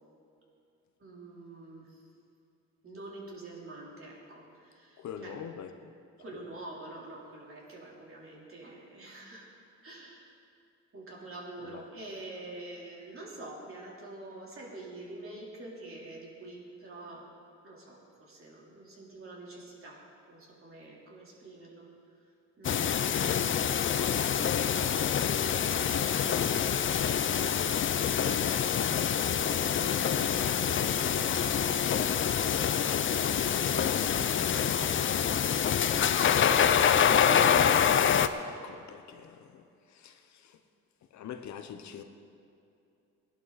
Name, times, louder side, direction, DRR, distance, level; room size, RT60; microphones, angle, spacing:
voice 1, 1.0-2.1 2.8-5.4 6.2-9.5 9.8-10.3 10.9-17.3 17.6-21.9 22.6-23.7 36.1-38.0, right 2 dB, 45° right, -3 dB, 3.7 m, -46 dB
voice 2, 5.0-5.9 11.6-11.8 23.9-25.2 25.5-26.5 27.7-31.2 31.7-35.1 38.5-40.6 41.1-42.0, left 8 dB, 65° left, 7 dB, 1.0 m, -45 dB
sound 1, 22.6-38.3, left 8 dB, 40° left, 0.6 m, -26 dB
18.0 x 11.0 x 4.2 m, 2.6 s
cardioid pair, 90°, 30 cm